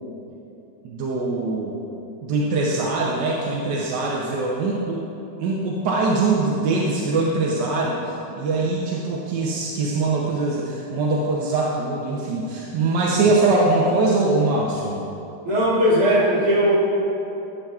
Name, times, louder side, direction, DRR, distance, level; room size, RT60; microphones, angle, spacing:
voice 1, 0.8-1.8 2.2-5.0 5.4-15.0, right 3 dB, 90° right, -3 dB, 1.4 m, -22 dB
voice 2, 15.4-16.8, equal, 60° right, -8 dB, 2.7 m, -18 dB
10.5 x 8.9 x 2.3 m, 2.9 s
omnidirectional pair, 1.8 m